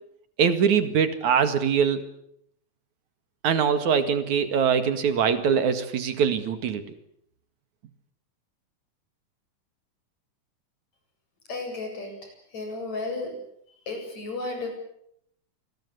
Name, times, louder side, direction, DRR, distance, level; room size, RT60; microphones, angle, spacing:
voice 1, 0.4-2.1 3.4-6.8, right 7 dB, 70° right, 10 dB, 3.3 m, -23 dB
voice 2, 11.5-13.3 13.9-14.7, left 3 dB, 60° left, 3 dB, 9.3 m, -33 dB
27.5 x 21.0 x 8.3 m, 0.73 s
omnidirectional pair, 3.6 m